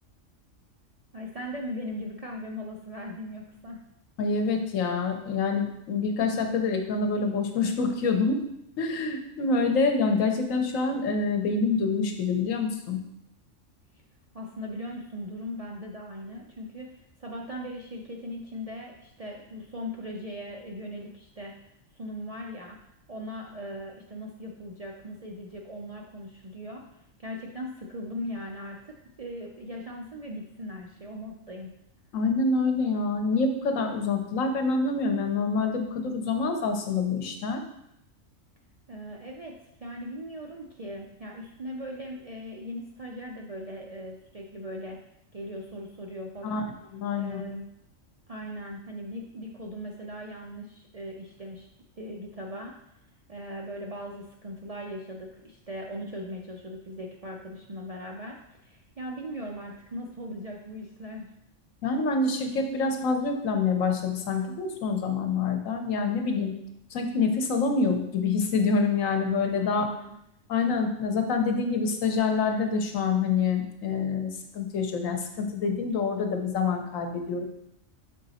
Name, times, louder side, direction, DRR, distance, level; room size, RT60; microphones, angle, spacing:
voice 1, 1.1-3.8 14.3-21.6 21.9-22.8 23.1-31.7 38.9-45.0 45.3-46.7 47.1-47.7 48.3-51.7 52.0-52.8 53.3-61.3 69.5-70.2, equal, 50° right, -1 dB, 0.4 m, -39 dB
voice 2, 4.2-8.4 8.8-13.0 32.1-37.6 46.4-46.6 46.9-47.4 61.8-66.5 66.9-69.8 70.5-77.5, left 4 dB, 85° left, 4 dB, 1.2 m, -26 dB
6.3 x 3.9 x 4.1 m, 0.80 s
omnidirectional pair, 1.3 m